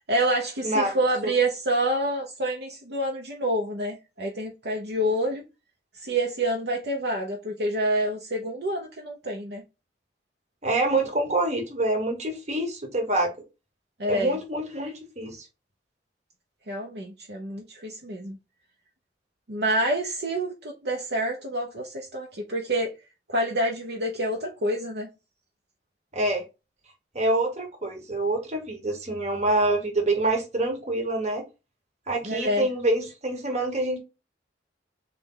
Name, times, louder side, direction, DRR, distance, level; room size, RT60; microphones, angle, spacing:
voice 1, 0.1-5.4 5.9-9.6 14.0-14.4 16.7-18.4 19.5-22.9 23.3-25.1 32.2-32.7, right 1 dB, 65° right, 0.8 m, -27 dB
voice 2, 10.6-13.3 14.0-15.5 26.1-26.4 27.1-31.4 32.1-34.0, right 2 dB, 40° right, 1.1 m, -26 dB
4.2 x 3.3 x 3.8 m
head